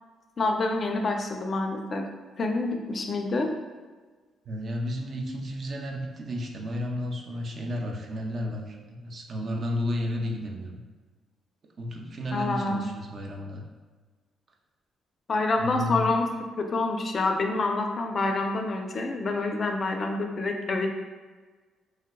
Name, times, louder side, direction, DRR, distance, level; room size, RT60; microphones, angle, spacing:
voice 1, 0.4-2.0 2.4-3.5 12.3-12.9 15.3-16.3 16.6-20.9, left 3 dB, 45° left, 3 dB, 0.4 m, -27 dB
voice 2, 4.5-10.7 11.8-13.6 15.6-16.0, left 1 dB, 45° right, 1 dB, 0.5 m, -32 dB
3.2 x 2.8 x 2.2 m, 1.4 s
cardioid pair, 90°, 0 cm